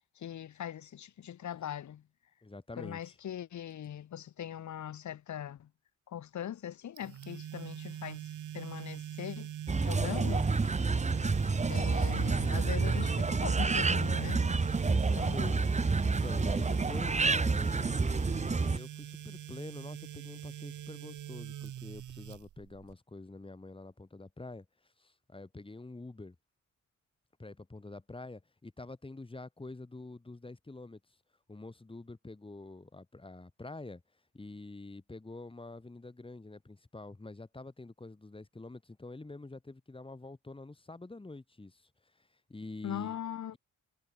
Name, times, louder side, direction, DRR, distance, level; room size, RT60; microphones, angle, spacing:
voice 1, 0.2-2.0 2.8-5.7 6.1-9.5 9.8-10.5 11.7-14.5 15.2-15.6 42.8-43.6, left 10 dB, 70° left, 2.7 m, -41 dB
voice 2, 2.4-3.2 14.9-24.7 25.0-26.4 27.4-31.0 31.5-34.0 34.3-41.9 42.2-43.2, left 2 dB, 15° left, 6.9 m, -46 dB
sound 1, 7.0-22.9, right 11 dB, 80° right, 5.5 m, -42 dB
sound 2, 9.7-18.8, right 4 dB, 25° right, 1.8 m, -29 dB
cardioid pair, 110°, 30 cm